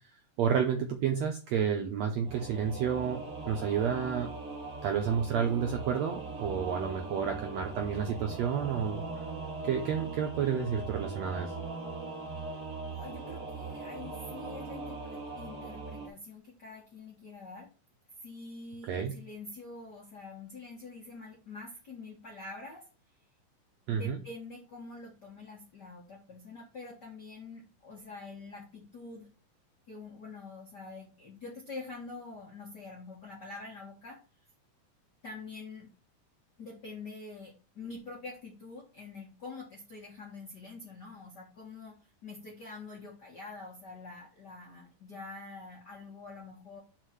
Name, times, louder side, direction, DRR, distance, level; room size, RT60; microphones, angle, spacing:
voice 1, 0.4-3.2 3.5-4.3 4.8-9.0 9.6-11.5 18.9-19.2 23.9-24.2, right 7 dB, 75° right, 4 dB, 1.6 m, -30 dB
Singing / Musical instrument, 2.2-16.1, right 3 dB, 30° right, 2.0 m, -40 dB
voice 2, 12.9-17.7 18.2-22.9 23.9-29.3 29.9-34.2 35.2-35.9 36.6-46.8, left 3 dB, 50° left, -2 dB, 1.2 m, -46 dB
6.5 x 4.5 x 6.1 m, 0.34 s
omnidirectional pair, 4.0 m